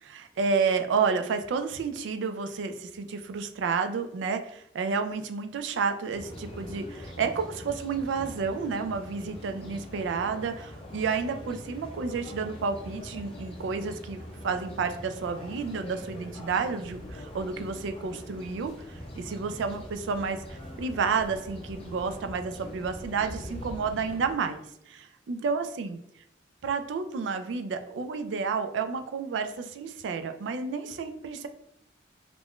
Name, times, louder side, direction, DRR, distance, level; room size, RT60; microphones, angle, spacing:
voice 1, 0.0-26.0 26.6-31.5, right 5 dB, 90° right, 8 dB, 0.3 m, -31 dB
sound 1, 6.1-24.3, equal, 30° left, 0.5 m, -43 dB
2.4 x 2.2 x 3.5 m, 0.74 s
head